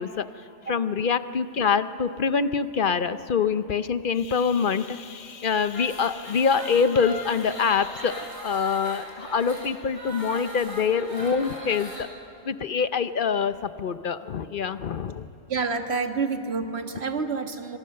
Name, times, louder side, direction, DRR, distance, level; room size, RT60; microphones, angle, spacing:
voice 1, 0.0-12.1 12.4-15.3, left 6 dB, 50° left, 12 dB, 0.8 m, -25 dB
sound 1, 5.7-12.1, equal, 25° right, 4.1 m, -39 dB
voice 2, 15.5-17.8, right 4 dB, 60° right, 5 dB, 1.8 m, -28 dB
27.0 x 25.0 x 6.6 m, 2.9 s
omnidirectional pair, 1.2 m